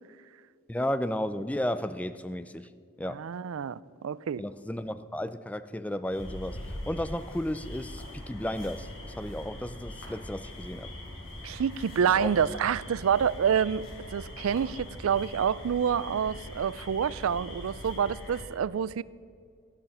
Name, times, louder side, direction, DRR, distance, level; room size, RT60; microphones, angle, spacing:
voice 1, 0.7-2.7 3.0-3.3 4.4-10.9 12.1-12.3, left 1 dB, 5° left, 0.3 m, -33 dB
voice 2, 3.2-4.4 11.4-13.9 14.1-19.0, right 7 dB, 85° right, 0.4 m, -27 dB
sound 1, 6.1-18.4, left 1 dB, 70° left, 4.7 m, -42 dB
14.5 x 12.0 x 5.5 m
head